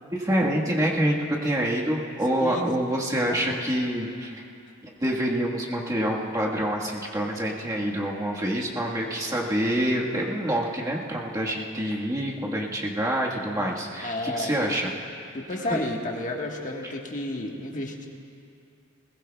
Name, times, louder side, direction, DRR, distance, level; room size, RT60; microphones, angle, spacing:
voice 1, 0.1-4.3 4.8-14.9 15.7-15.8, right 1 dB, 20° right, -3 dB, 1.4 m, -26 dB
voice 2, 2.4-2.7 3.1-3.6 14.0-14.8 15.3-18.1, left 1 dB, 40° left, 0 dB, 1.4 m, -32 dB
21.0 x 19.5 x 2.3 m, 2.6 s
head